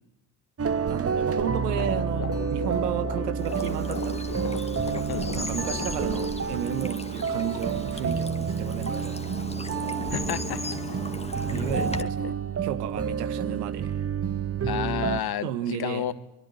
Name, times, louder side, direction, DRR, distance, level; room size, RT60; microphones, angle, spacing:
sound 1, 0.6-15.2, right 6 dB, 30° right, 1.5 m, -29 dB
voice 1, 0.9-4.5 5.3-9.2 11.5-12.4 12.6-13.9 15.4-16.1, right 10 dB, 90° right, 13 dB, 1.7 m, -33 dB
sound 2, 1.3-6.3, left 7 dB, 35° left, 1.3 m, -38 dB
Bird vocalization bird call bird song / Stream, 3.4-12.0, left 2 dB, 15° left, 2.1 m, -37 dB
voice 2, 10.1-10.6 11.8-12.3 14.6-16.1, left 10 dB, 50° left, 13 dB, 1.8 m, -31 dB
24.5 x 23.0 x 9.8 m, 0.86 s
hypercardioid pair, 55°, 47 cm